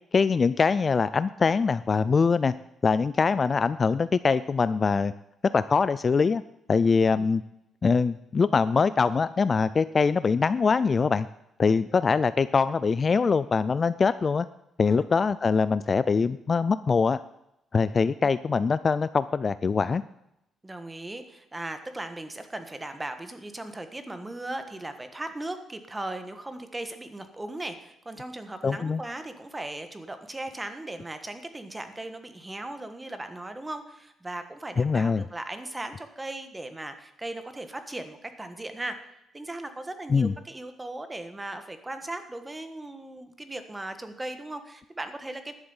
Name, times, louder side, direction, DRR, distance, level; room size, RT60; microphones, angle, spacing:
voice 1, 0.1-2.5 2.8-5.1 5.5-6.4 6.7-7.4 7.8-11.3 11.6-14.5 14.8-17.2 17.7-20.0 28.6-29.0 34.8-35.2 40.1-40.3, left 5 dB, 35° left, 15 dB, 0.3 m, -23 dB
voice 2, 20.6-39.0 39.3-45.5, right 2 dB, 15° right, 8 dB, 1.4 m, -38 dB
11.5 x 7.3 x 7.2 m, 0.84 s
cardioid pair, 105°, 0 cm